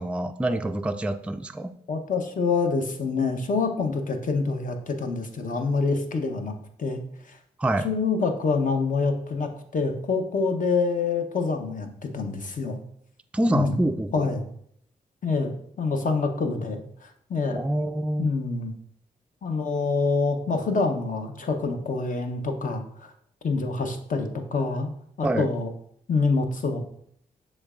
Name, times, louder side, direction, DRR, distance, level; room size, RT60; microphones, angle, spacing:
voice 1, 0.0-1.7 7.6-7.9 13.3-14.3 17.5-18.3 25.2-25.5, right 1 dB, 5° right, 7 dB, 0.3 m, -26 dB
voice 2, 1.9-6.5 6.8-7.4 7.8-12.8 13.5-13.8 14.1-14.5 15.2-15.5 15.8-17.6 18.2-18.7 19.4-23.1 23.4-24.9 25.2-25.7 26.1-26.8, left 4 dB, 50° left, 5 dB, 0.8 m, -26 dB
6.3 x 3.2 x 2.4 m, 0.68 s
supercardioid pair, 45°, 17 cm